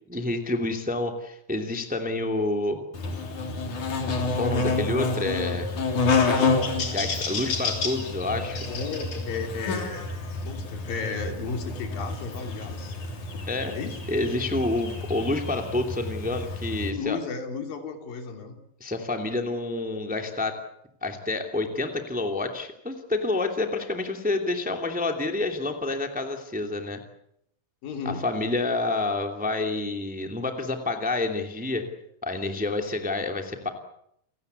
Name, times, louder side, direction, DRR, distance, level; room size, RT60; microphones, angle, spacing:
voice 1, 0.1-2.8 4.3-5.7 6.8-8.6 13.5-13.7 14.1-17.2 18.8-20.6 21.0-27.0 28.0-31.9 32.2-33.7, left 2 dB, 5° right, 5 dB, 2.1 m, -28 dB
Buzz, 2.9-16.9, left 3 dB, 60° left, 4.7 m, -29 dB
voice 2, 8.7-13.0 13.7-14.0 16.8-18.6 27.8-28.2, left 5 dB, 75° left, 5 dB, 4.8 m, -34 dB
29.5 x 18.0 x 8.3 m, 0.73 s
omnidirectional pair, 4.1 m